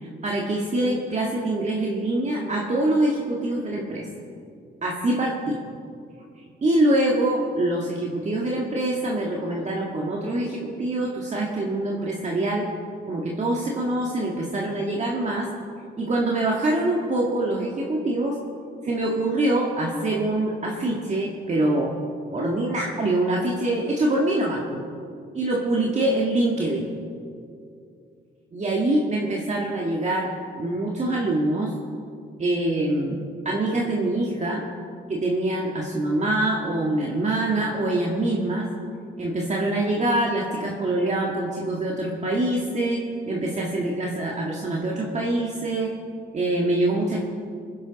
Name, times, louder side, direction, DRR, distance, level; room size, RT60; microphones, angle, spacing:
voice 1, 0.0-4.1 4.8-5.6 6.6-12.7 13.1-15.5 16.0-18.4 18.8-21.9 22.3-24.8 25.3-26.9 28.5-30.3 30.6-31.7 32.4-33.2 33.5-34.6 35.1-38.7 39.2-45.9 46.3-47.2, right 1 dB, 35° right, -2 dB, 1.8 m, -24 dB
21.0 x 10.5 x 4.1 m, 2.4 s
cardioid pair, 90°, 20 cm